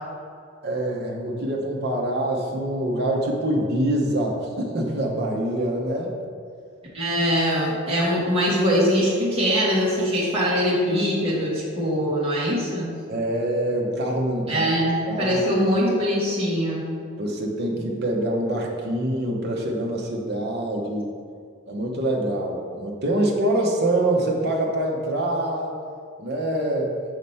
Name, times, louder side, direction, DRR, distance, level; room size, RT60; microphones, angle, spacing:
voice 1, 0.6-6.1 13.1-14.7 15.1-15.4 17.2-21.1 21.7-25.8 26.2-26.9, right 1 dB, 50° right, -1 dB, 0.9 m, -25 dB
voice 2, 6.9-12.9 14.5-16.8, equal, 25° right, -7 dB, 1.4 m, -22 dB
4.9 x 4.3 x 5.6 m, 2.2 s
head